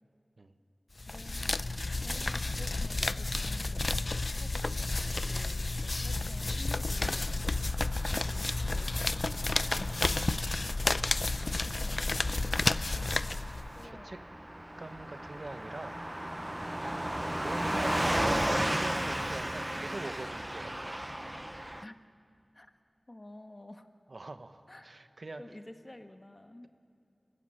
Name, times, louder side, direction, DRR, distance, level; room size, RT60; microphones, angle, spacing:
sound 1, 1.0-13.8, left 2 dB, 55° left, 0.5 m, -31 dB
voice 1, 1.1-5.0 5.3-7.8 8.2-9.7 10.0-10.4 11.5-13.3 13.7-14.1 16.6-16.8 21.8-22.0 22.5-22.7 23.1-23.9 24.7-24.9 25.4-26.7, left 1 dB, 35° left, 7 dB, 1.3 m, -51 dB
Car passing by / Truck, 7.5-21.8, right 1 dB, 15° right, 0.6 m, -35 dB
voice 2, 13.8-14.2 14.8-16.3 16.7-20.8 24.1-25.4, right 2 dB, 65° right, 9 dB, 1.0 m, -43 dB
25.0 x 15.5 x 9.9 m, 2.5 s
wide cardioid pair, 60°, 0 cm